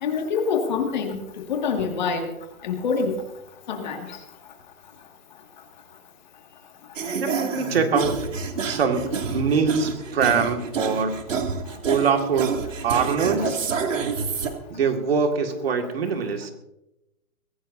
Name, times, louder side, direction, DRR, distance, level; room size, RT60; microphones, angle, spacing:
voice 1, 0.0-1.2 1.5-2.3 2.6-3.1 3.7-4.0 13.4-13.6, left 5 dB, 30° left, 3 dB, 2.1 m, -25 dB
sound 1, 7.0-14.5, right 5 dB, 55° right, 2.6 m, -28 dB
voice 2, 7.1-8.2 8.6-11.2 11.9-12.6 12.8-13.7 14.7-16.5, right 5 dB, 40° right, 4 dB, 2.2 m, -23 dB
23.5 x 16.5 x 2.7 m, 0.87 s
hypercardioid pair, 170°, 45 cm